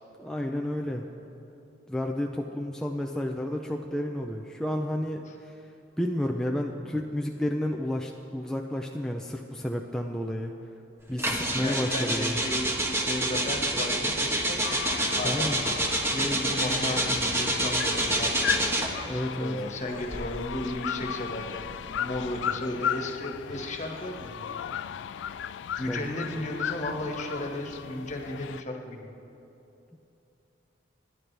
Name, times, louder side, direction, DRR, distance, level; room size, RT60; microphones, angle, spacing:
voice 1, 0.2-1.1 1.9-5.5 6.0-10.5 11.1-12.4 15.2-15.6 19.0-19.6 25.9-26.1, left 1 dB, 5° left, 0 dB, 0.5 m, -31 dB
sound 1, 11.2-19.1 19.9-22.4, right 1 dB, 15° right, 1.2 m, -28 dB
voice 2, 11.6-19.0 19.4-21.6 21.9-24.7 25.0-25.3 25.8-29.1, left 1 dB, 40° left, 2 dB, 1.6 m, -35 dB
sound 2, 14.6-28.6, left 9 dB, 75° left, 0.3 m, -35 dB
27.5 x 11.0 x 3.4 m, 2.9 s
head